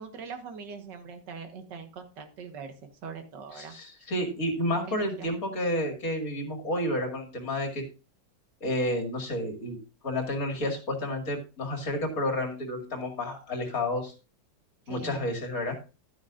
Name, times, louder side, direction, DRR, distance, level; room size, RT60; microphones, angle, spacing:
voice 1, 0.0-2.7 3.0-3.8 4.7-5.3 5.6-5.7 14.9-15.3, right 5 dB, 70° right, 7 dB, 2.0 m, -42 dB
voice 2, 3.6-7.8 8.6-9.8 10.0-14.1 14.9-15.7, left 1 dB, 50° left, 3 dB, 2.5 m, -30 dB
11.5 x 9.5 x 2.5 m, 0.31 s
omnidirectional pair, 2.0 m